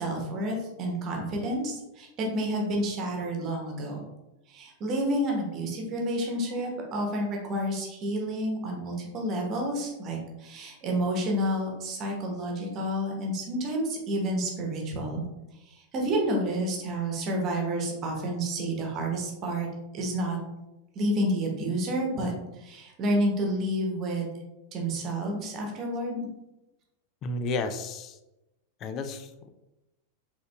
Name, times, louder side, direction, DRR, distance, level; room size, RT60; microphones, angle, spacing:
voice 1, 0.0-4.0 4.5-15.2 15.7-19.7 19.9-20.4 20.9-24.3 24.7-26.3, right 1 dB, 35° right, 0 dB, 1.1 m, -30 dB
voice 2, 27.2-28.2 28.8-29.5, left 3 dB, 35° left, 9 dB, 0.4 m, -32 dB
5.2 x 3.5 x 2.3 m, 0.97 s
figure-of-eight pair, 90°, 0 cm